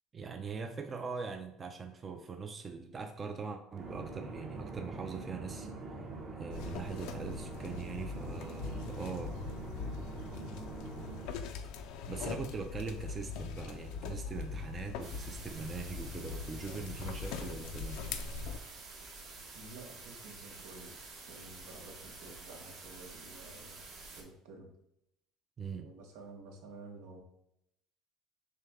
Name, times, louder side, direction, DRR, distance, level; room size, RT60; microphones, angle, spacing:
voice 1, 0.1-5.7 6.3-9.4 12.1-18.0 25.6-25.9, right 5 dB, 25° right, 6 dB, 0.4 m, -42 dB
sound 1, 3.7-11.3, right 3 dB, 45° right, 1.0 m, -44 dB
sound 2, 6.5-18.6, left 5 dB, 80° left, 0.5 m, -42 dB
voice 2, 10.3-10.8 19.5-23.8 24.1-24.7 25.8-27.2, right 2 dB, 80° right, 1 dB, 1.1 m, -51 dB
sound 3, 15.0-24.2, right 3 dB, 60° right, 1.3 m, -49 dB
6.5 x 2.2 x 3.5 m, 0.76 s
cardioid pair, 125°, 0 cm